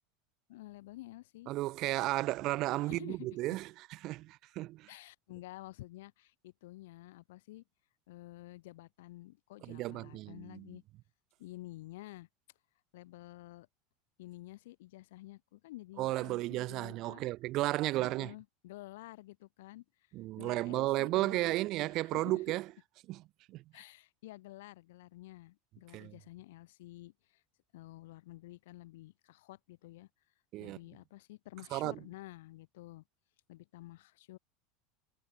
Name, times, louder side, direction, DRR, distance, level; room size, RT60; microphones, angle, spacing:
voice 1, 0.5-1.5 2.8-3.3 4.9-7.6 8.1-10.8 11.4-12.3 12.9-13.7 14.2-17.2 17.9-19.8 20.4-21.6 21.8-22.4 23.7-27.4 27.7-30.1 30.6-33.0 33.5-34.4, left 18 dB, 80° left, 1.5 m, -50 dB
voice 2, 1.5-3.7 4.0-4.9 9.6-10.7 16.0-18.3 20.1-22.6 23.1-23.2 23.5-23.6 25.9-26.1 30.5-30.8 31.7-32.0, right 18 dB, 45° right, 0.9 m, -33 dB
supercardioid pair, 150°, 0 cm